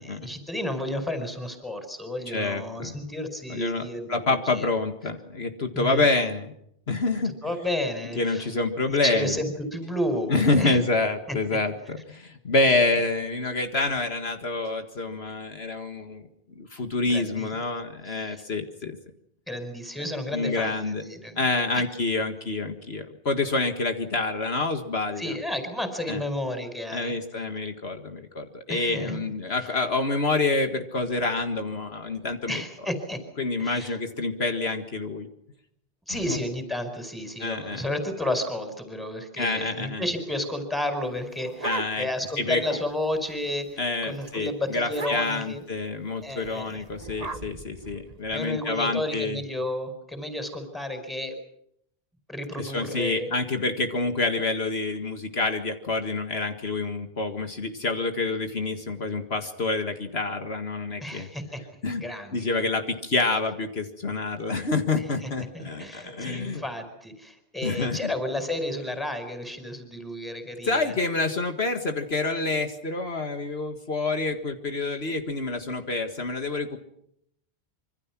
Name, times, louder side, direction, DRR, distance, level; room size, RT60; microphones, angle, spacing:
voice 1, 0.0-4.2 4.5-4.7 5.7-6.1 7.4-8.5 8.9-10.8 11.3-11.6 12.7-12.9 17.0-17.6 18.0-18.4 19.5-21.4 25.2-27.1 28.7-29.2 32.5-33.2 33.6-33.9 36.1-45.6 46.2-46.8 48.3-51.3 52.3-53.3 61.0-61.6 62.0-62.6 65.0-65.3 65.5-70.9, left 1 dB, ahead, 8 dB, 4.9 m, -32 dB
voice 2, 2.3-2.9 3.5-6.5 6.9-7.3 8.2-9.4 10.3-16.3 16.6-19.0 20.3-21.0 21.4-25.4 26.1-26.2 26.9-32.6 33.4-35.3 36.1-36.4 37.4-37.8 39.4-40.0 41.6-42.1 42.4-42.8 43.8-49.4 52.6-61.3 61.8-62.0 62.3-66.6 67.6-68.1 70.6-76.8, left 3 dB, 65° left, 7 dB, 2.1 m, -27 dB
sound 1, 41.0-42.3 42.7-42.8 43.0-43.4 43.7-43.9 44.2-44.3 44.9-45.5 46.4-48.5, right 3 dB, 35° right, 1.4 m, -38 dB
26.0 x 25.0 x 6.1 m, 0.72 s
omnidirectional pair, 1.1 m